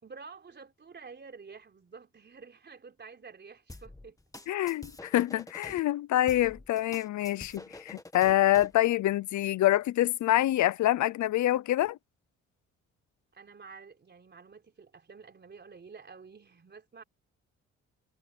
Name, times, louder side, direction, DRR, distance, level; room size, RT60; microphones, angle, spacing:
voice 1, 0.0-4.2 13.3-17.0, right 5 dB, 35° right, 4.1 m, -50 dB
sound 1, 3.7-5.8 6.3-8.8, left 2 dB, 10° left, 2.1 m, -47 dB
voice 2, 4.5-12.0, left 14 dB, 70° left, 0.7 m, -26 dB
cardioid pair, 90°, 30 cm